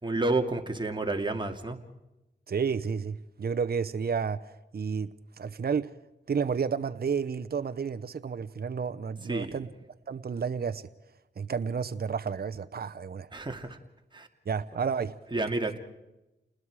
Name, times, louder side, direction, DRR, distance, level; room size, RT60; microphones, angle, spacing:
voice 1, 0.0-1.8 9.3-9.6 13.3-13.8 14.1-14.3 15.3-15.8, right 2 dB, 25° right, 4 dB, 2.4 m, -30 dB
voice 2, 2.5-4.5 4.7-5.9 6.3-9.7 10.1-10.9 11.4-13.3 14.5-15.2, right 6 dB, 50° right, 10 dB, 0.8 m, -31 dB
29.0 x 20.0 x 4.8 m, 0.96 s
cardioid pair, 60°, 20 cm